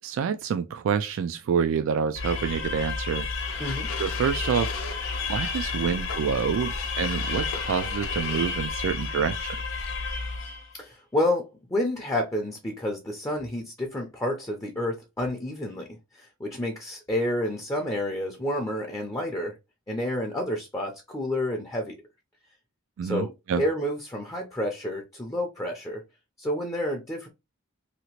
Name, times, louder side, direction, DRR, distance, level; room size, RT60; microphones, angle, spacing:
voice 1, 0.0-3.3 4.0-4.7 5.3-9.6 23.0-23.6, right 7 dB, 65° right, 0.3 m, -27 dB
sound 1, 2.1-10.7, left 4 dB, 65° left, 0.8 m, -31 dB
sound 2, 3.4-8.9, left 5 dB, 85° left, 0.6 m, -40 dB
voice 2, 10.7-15.9 16.1-19.5 19.9-22.0 23.0-26.0 26.4-27.3, left 1 dB, 15° left, 0.6 m, -29 dB
2.8 x 2.4 x 2.8 m
head